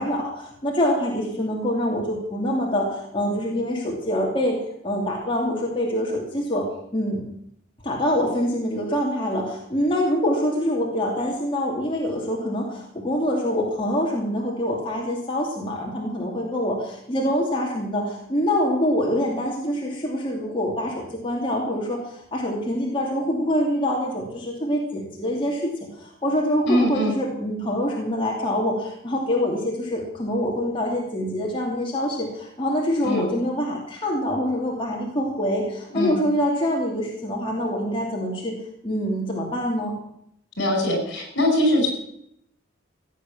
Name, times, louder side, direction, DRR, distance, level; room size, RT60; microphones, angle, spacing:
voice 1, 0.0-4.6 4.8-6.6 6.9-7.2 7.8-38.5 38.8-39.9, equal, 25° left, -2 dB, 2.7 m, -25 dB
voice 2, 26.7-27.1 33.0-33.3 35.9-36.2 40.6-41.9, left 1 dB, 65° left, 3 dB, 5.5 m, -22 dB
16.5 x 8.5 x 7.2 m, 0.73 s
head